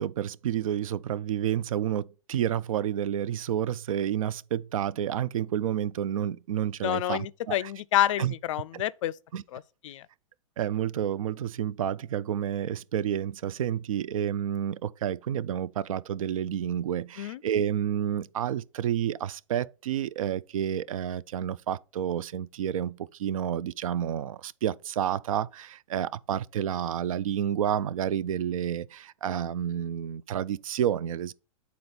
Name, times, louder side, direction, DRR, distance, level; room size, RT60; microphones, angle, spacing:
voice 1, 0.0-7.7 8.2-8.3 8.7-8.8 9.3-9.4 10.6-31.3, right 10 dB, 80° right, 0.4 m, -30 dB
voice 2, 6.8-9.1 9.5-9.6 9.8-10.0 17.2-17.4, left 13 dB, 65° left, 0.4 m, -28 dB
7.9 x 4.1 x 4.1 m
hypercardioid pair, 130°, 17 cm